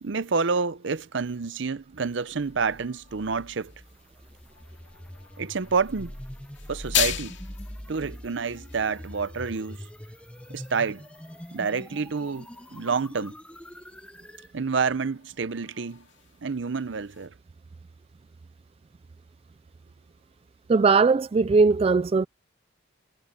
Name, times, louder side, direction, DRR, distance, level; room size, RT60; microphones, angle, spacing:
voice 1, 0.0-3.7 5.4-6.1 6.7-7.3 7.9-9.9 10.5-11.0 11.5-13.3 14.5-16.0 16.4-17.3, right 5 dB, 65° right, 0.7 m, -28 dB
sound 1, 2.4-17.3, left 11 dB, 65° left, 2.3 m, -39 dB
sound 2, 2.4-14.5, equal, 5° left, 0.7 m, -43 dB
voice 2, 20.7-22.3, right 4 dB, 30° right, 0.3 m, -19 dB
head